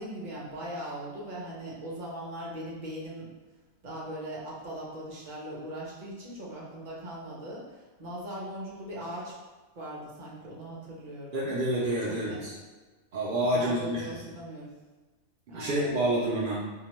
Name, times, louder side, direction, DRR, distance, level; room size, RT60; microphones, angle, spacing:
voice 1, 0.0-3.3 3.8-9.3 9.7-11.6 12.1-12.4 13.5-14.7 15.5-15.9, right 1 dB, 45° right, -5 dB, 0.7 m, -39 dB
voice 2, 11.3-12.5 13.1-14.1 15.5-16.6, right 1 dB, 80° right, -6 dB, 0.4 m, -28 dB
2.7 x 2.1 x 2.9 m, 1.3 s
omnidirectional pair, 1.4 m